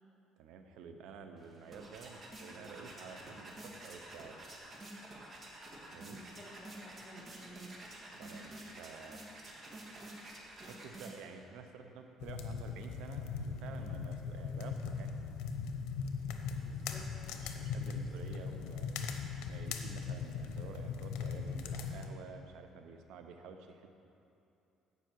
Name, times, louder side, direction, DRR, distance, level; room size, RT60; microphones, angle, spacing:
voice 1, 0.4-4.4 5.9-6.2 8.2-9.2 10.6-15.1 17.4-18.9 19.5-23.9, right 5 dB, 80° right, 6 dB, 0.8 m, -50 dB
sound 1, 1.4-11.4, right 1 dB, 35° right, 1.8 m, -50 dB
voice 2, 6.1-7.7 16.5-17.4 17.9-18.0, equal, 20° left, -6 dB, 1.5 m, -54 dB
sound 2, 12.2-22.1, left 5 dB, 85° left, 0.7 m, -39 dB
15.5 x 5.7 x 4.7 m, 2.7 s
cardioid pair, 105°, 0 cm